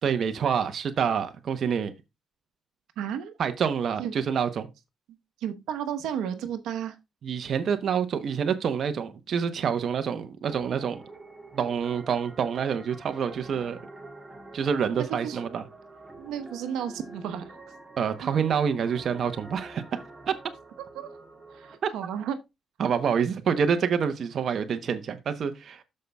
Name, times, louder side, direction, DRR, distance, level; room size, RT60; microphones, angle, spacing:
voice 1, 0.0-1.9 3.4-4.7 7.2-11.0 11.5-13.8 14.5-15.7 18.0-19.8 20.3-20.4 21.8-21.9 22.8-25.8, right 7 dB, 60° right, 0.9 m, -27 dB
voice 2, 3.0-3.3 4.0-4.1 5.4-7.0 14.9-15.4 16.2-17.5 18.2-18.4 20.9-21.1 21.5-22.4, right 9 dB, 85° right, 1.0 m, -33 dB
sound 1, 10.4-21.8, right 2 dB, 20° right, 2.6 m, -47 dB
13.0 x 5.4 x 2.3 m
cardioid pair, 90°, 0 cm